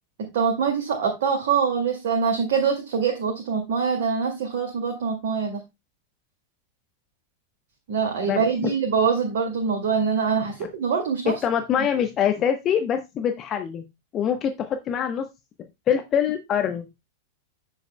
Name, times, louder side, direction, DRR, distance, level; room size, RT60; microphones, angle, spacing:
voice 1, 0.2-5.6 7.9-11.3, right 6 dB, 55° right, 1 dB, 2.2 m, -24 dB
voice 2, 8.2-8.7 11.4-13.8 14.1-15.2 15.9-16.9, left 8 dB, 30° left, 6 dB, 1.0 m, -24 dB
10.0 x 7.6 x 2.2 m, 0.22 s
figure-of-eight pair, 90°, 0 cm